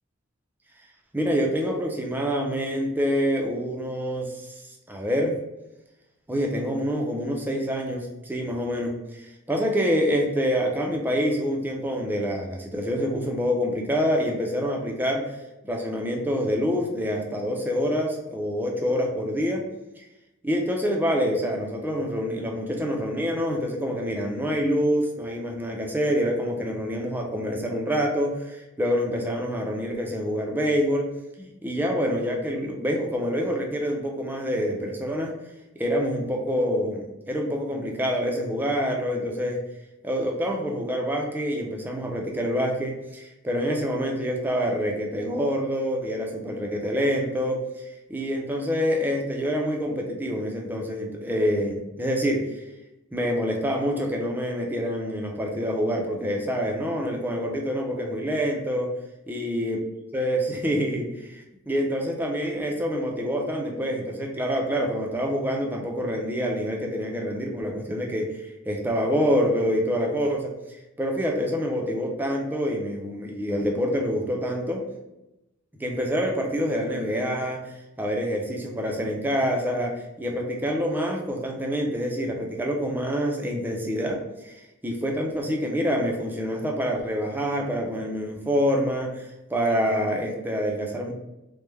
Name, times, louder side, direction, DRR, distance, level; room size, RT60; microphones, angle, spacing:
voice 1, 1.1-4.5 4.9-5.3 6.3-15.2 15.6-19.6 20.0-20.1 20.4-31.1 31.4-35.3 35.8-39.6 40.0-52.4 53.1-58.9 59.3-59.8 60.1-70.5 71.0-74.8 75.8-77.6 78.0-84.5 84.8-91.1, equal, 10° right, 0 dB, 0.4 m, -26 dB
3.2 x 2.1 x 3.2 m, 0.94 s
head